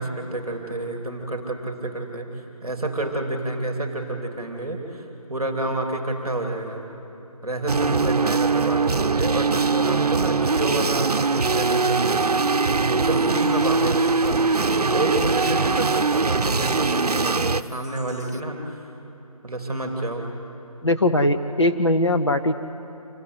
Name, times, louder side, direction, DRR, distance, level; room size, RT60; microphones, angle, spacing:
voice 1, 0.0-2.3 2.6-6.8 7.4-14.5 14.9-18.8 19.4-20.3, right 2 dB, ahead, -20 dB, 1.5 m, -29 dB
sound 1, 7.7-17.6, right 4 dB, 90° right, 0.7 m, -22 dB
sound 2, 10.7-18.4, equal, 30° right, 0.5 m, -42 dB
voice 2, 20.8-22.5, left 1 dB, 50° left, 6 dB, 0.7 m, -20 dB
26.5 x 16.5 x 8.2 m, 3.0 s
figure-of-eight pair, 180°, 19 cm